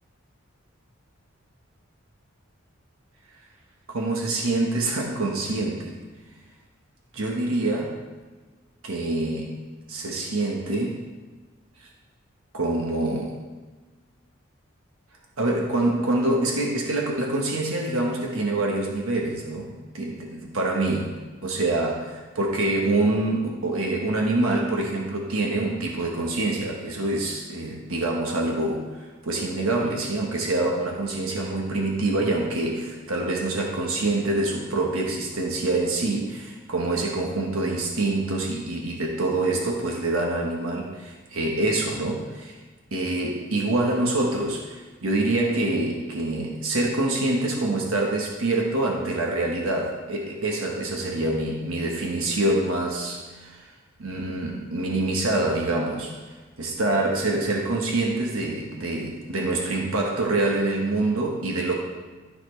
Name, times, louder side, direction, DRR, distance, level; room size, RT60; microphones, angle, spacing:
voice 1, 3.9-6.0 7.1-7.9 8.8-9.6 9.9-11.0 11.8-11.9 12.5-13.4 15.4-21.1 21.4-42.6 42.9-53.7 54.0-56.1 56.6-61.8, right 2 dB, 90° right, -1 dB, 1.2 m, -26 dB
13.0 x 4.3 x 3.2 m, 1.3 s
head